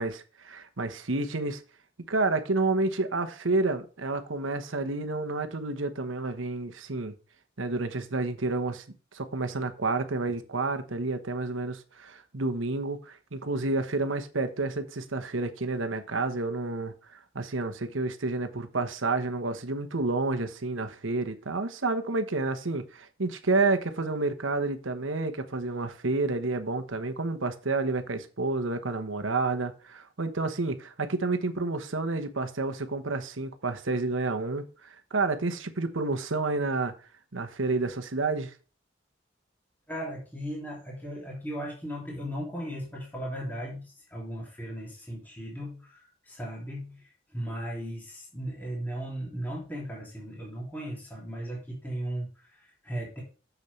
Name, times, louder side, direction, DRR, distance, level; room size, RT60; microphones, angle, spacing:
voice 1, 0.0-1.6 2.1-7.1 7.6-8.8 9.1-16.9 17.3-36.9 37.3-38.5, right 3 dB, 85° right, 1.1 m, -30 dB
voice 2, 39.9-53.2, equal, 10° left, 2.9 m, -37 dB
7.2 x 6.8 x 3.3 m
head